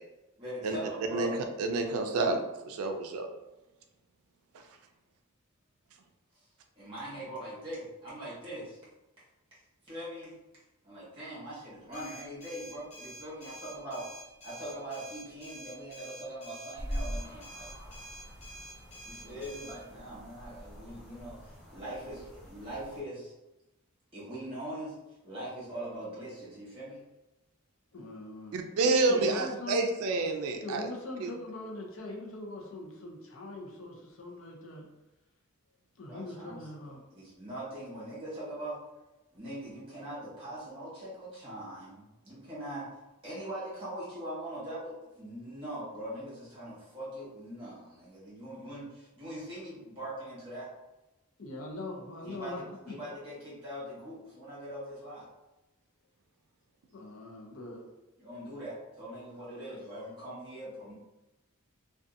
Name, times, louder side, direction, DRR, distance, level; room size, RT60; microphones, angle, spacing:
voice 1, 0.4-1.3 6.3-6.4 6.8-8.8 9.5-9.6 9.8-10.3 10.8-14.0 14.4-17.7 19.0-23.3 24.1-24.9 25.2-27.0 36.0-38.8 39.3-42.9 43.2-50.7 52.2-55.3 58.2-60.9, right 1 dB, 25° right, -8 dB, 1.2 m, -42 dB
voice 2, 1.6-2.4 2.7-3.3 28.5-30.9 31.2-31.3, right 3 dB, 90° right, 4 dB, 0.4 m, -28 dB
sound 1, 11.9-19.8, right 1 dB, 30° left, 0.9 m, -48 dB
sound 2, 16.7-23.0, equal, ahead, 0.6 m, -43 dB
voice 3, 27.9-28.6 29.1-29.9 30.6-34.9 36.0-37.0 51.4-52.9 56.9-57.9, left 2 dB, 65° left, -1 dB, 0.6 m, -41 dB
2.5 x 2.3 x 2.5 m, 0.99 s
head